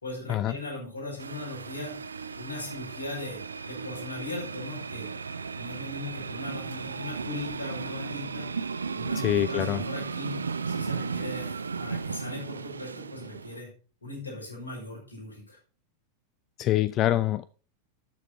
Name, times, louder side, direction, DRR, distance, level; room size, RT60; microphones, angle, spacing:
voice 1, 0.0-1.9 2.4-3.4 3.7-5.1 5.5-8.5 8.9-13.7 14.0-15.6, left 2 dB, 75° left, -1 dB, 5.9 m, -39 dB
sound 1, 1.2-13.6, right 5 dB, 75° right, 0.5 m, -35 dB
voice 2, 9.1-9.8 16.6-17.4, left 13 dB, 35° left, 17 dB, 0.4 m, -25 dB
12.0 x 6.8 x 4.2 m, 0.38 s
figure-of-eight pair, 90°, 0 cm